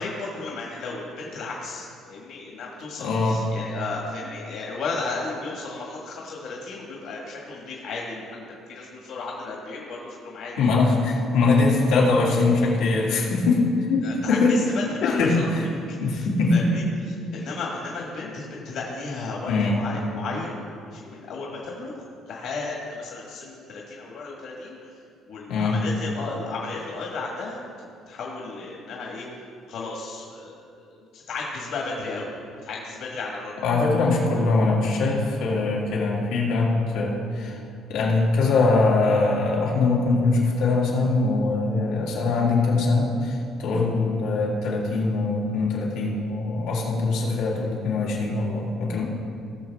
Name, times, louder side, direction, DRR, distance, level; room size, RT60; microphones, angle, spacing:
voice 1, 0.0-10.8 14.0-15.5 15.9-16.2 16.5-20.6 20.9-24.8 25.3-27.6 28.1-29.2 29.7-32.3 32.6-33.5, left 3 dB, 50° left, -3 dB, 1.7 m, -34 dB
voice 2, 3.0-3.4 10.6-14.6 15.0-15.7 16.0-16.6 19.5-19.8 25.5-25.8 33.6-37.6 37.9-49.0, left 3 dB, 80° left, -4 dB, 2.3 m, -22 dB
18.0 x 6.5 x 3.6 m, 2.4 s
cardioid pair, 175°, 0 cm